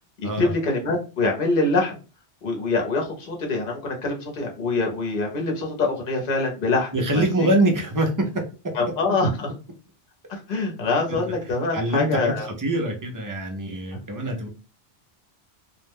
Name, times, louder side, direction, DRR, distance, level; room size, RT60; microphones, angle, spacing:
voice 1, 0.2-2.0 2.4-7.5 8.7-9.5 10.3-12.5 13.9-14.0, left 3 dB, 55° left, 1 dB, 0.9 m, -25 dB
voice 2, 6.9-8.3 11.1-11.2 11.7-14.5, right 1 dB, 30° right, 2 dB, 0.3 m, -24 dB
2.3 x 2.1 x 3.3 m, 0.33 s
omnidirectional pair, 1.1 m